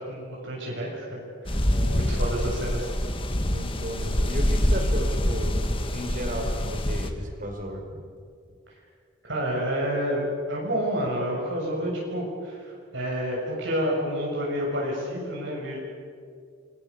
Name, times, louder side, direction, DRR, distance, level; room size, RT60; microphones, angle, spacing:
voice 1, 0.0-1.6 2.1-2.9 9.2-15.8, equal, 70° right, -3 dB, 7.1 m, -29 dB
sound 1, 1.4-7.1, equal, 25° left, 1.8 m, -25 dB
voice 2, 3.5-8.0, equal, 45° right, 4 dB, 4.9 m, -34 dB
29.0 x 23.5 x 7.1 m, 2.2 s
head